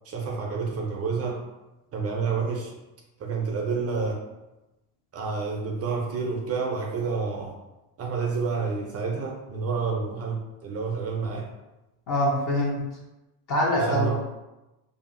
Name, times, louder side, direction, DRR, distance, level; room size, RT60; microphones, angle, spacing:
voice 1, 0.1-1.4 1.9-2.7 3.2-4.2 5.1-7.6 8.0-11.5 13.8-14.2, right 5 dB, 35° right, 0 dB, 0.5 m, -29 dB
voice 2, 12.1-12.9 13.5-14.2, equal, 40° left, -3 dB, 0.8 m, -24 dB
2.7 x 2.5 x 2.5 m, 1.0 s
supercardioid pair, 95°, 47 cm